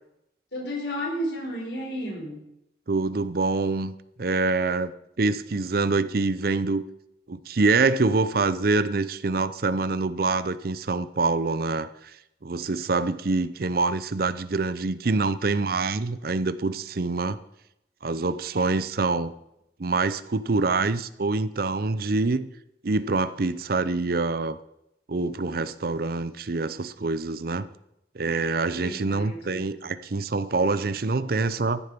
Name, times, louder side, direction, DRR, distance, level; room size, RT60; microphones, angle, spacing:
voice 1, 0.5-2.4 28.7-29.7, equal, 70° left, 1 dB, 4.2 m, -32 dB
voice 2, 2.9-4.9 5.2-6.8 7.3-12.1 12.4-17.4 18.0-19.3 19.8-22.5 22.8-24.6 25.1-27.7 28.1-31.8, right 3 dB, 55° right, 14 dB, 0.6 m, -25 dB
14.0 x 10.5 x 5.2 m, 0.83 s
head